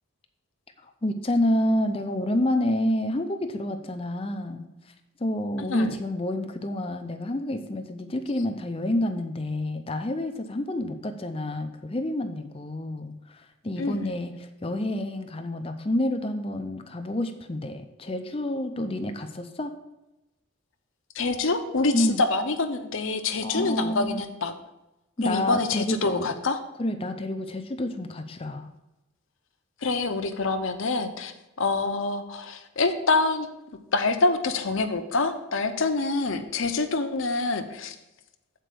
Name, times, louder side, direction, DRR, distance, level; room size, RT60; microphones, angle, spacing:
voice 1, 0.8-4.9 5.2-19.7 21.9-22.2 23.4-24.2 25.2-26.3 26.8-28.7, left 1 dB, 25° left, 7 dB, 0.5 m, -28 dB
voice 2, 21.2-24.5 25.2-26.6 29.8-31.3 31.6-33.5 33.9-38.0, left 3 dB, 65° left, 6 dB, 0.7 m, -26 dB
7.7 x 4.5 x 6.7 m, 0.96 s
head